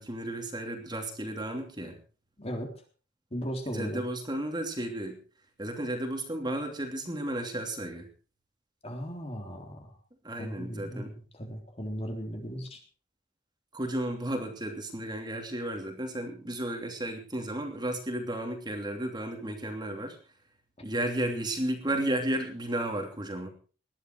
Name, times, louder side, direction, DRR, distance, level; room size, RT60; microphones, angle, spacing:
voice 1, 0.0-2.0 3.7-5.2 5.6-8.1 10.2-11.1 13.7-20.2 20.8-23.5, right 1 dB, 25° right, 4 dB, 2.9 m, -33 dB
voice 2, 2.4-2.7 3.3-4.0 8.8-10.0 10.4-12.8, equal, 35° left, 3 dB, 3.6 m, -37 dB
19.5 x 12.5 x 4.7 m, 0.38 s
head